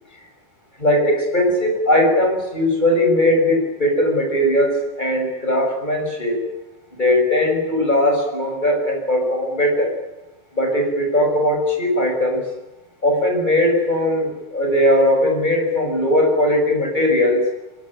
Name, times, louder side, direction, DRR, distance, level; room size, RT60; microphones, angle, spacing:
voice 1, 0.8-6.4 6.9-9.9 10.5-12.4 13.0-17.4, left 1 dB, 10° left, 3 dB, 6.4 m, -19 dB
24.0 x 22.0 x 9.0 m, 1.0 s
omnidirectional pair, 5.9 m